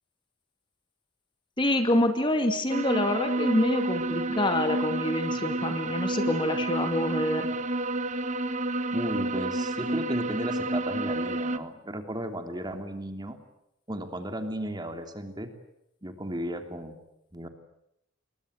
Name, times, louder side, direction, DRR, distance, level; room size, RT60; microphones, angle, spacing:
voice 1, 1.6-7.5, left 1 dB, 25° left, 7 dB, 2.4 m, -26 dB
sound 1, 2.7-11.6, right 2 dB, 35° right, 1.5 m, -30 dB
voice 2, 8.9-13.4 13.9-15.5 16.0-17.0 17.3-17.5, equal, 20° right, 6 dB, 3.1 m, -34 dB
28.5 x 23.0 x 8.0 m, 0.81 s
head